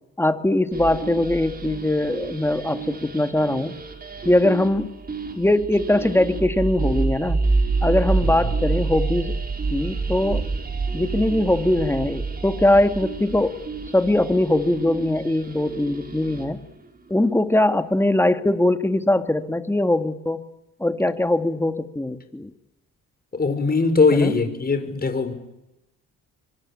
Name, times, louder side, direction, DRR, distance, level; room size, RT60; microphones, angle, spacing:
voice 1, 0.2-3.8 4.3-4.9 5.4-7.4 7.8-9.4 9.7-10.5 10.9-13.6 13.9-16.6 17.1-20.4 20.8-22.5 24.1-24.4, left 1 dB, 5° left, 9 dB, 2.0 m, -21 dB
sound 1, 0.7-16.6, right 4 dB, 30° right, 4.3 m, -28 dB
voice 2, 23.3-25.3, left 4 dB, 30° left, 8 dB, 5.2 m, -20 dB
26.5 x 24.5 x 8.7 m, 0.93 s
cardioid pair, 90°, 31 cm